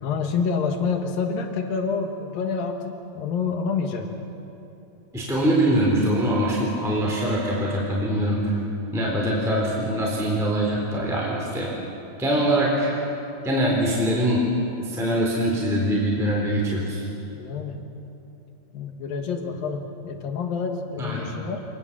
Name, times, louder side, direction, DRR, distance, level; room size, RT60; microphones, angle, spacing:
voice 1, 0.0-4.1 9.1-9.5 17.3-17.8 18.7-21.6, left 5 dB, 60° left, 4 dB, 3.0 m, -28 dB
voice 2, 5.1-8.6 8.9-11.7 12.2-12.9 13.4-14.4 14.8-17.0 21.0-21.3, right 1 dB, ahead, -3 dB, 3.2 m, -23 dB
26.0 x 20.0 x 7.6 m, 2.9 s
omnidirectional pair, 5.0 m